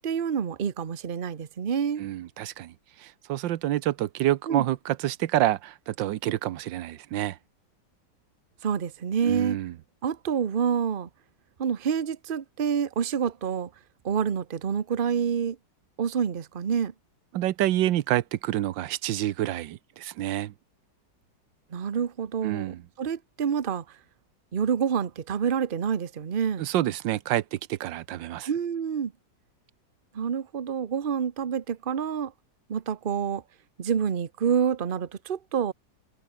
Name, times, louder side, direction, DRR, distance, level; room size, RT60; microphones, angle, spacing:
voice 1, 0.0-2.0 4.5-4.6 8.6-9.6 10.0-11.1 11.6-13.7 14.0-15.6 16.0-16.9 21.7-24.0 24.5-26.7 28.5-29.1 30.1-32.3 32.7-33.4 33.8-35.7, right 7 dB, 35° right, 1.0 m, -27 dB
voice 2, 2.0-7.4 9.2-9.7 17.3-20.5 22.4-22.8 26.6-28.5, right 13 dB, 90° right, 1.5 m, -28 dB
omnidirectional pair, 1.9 m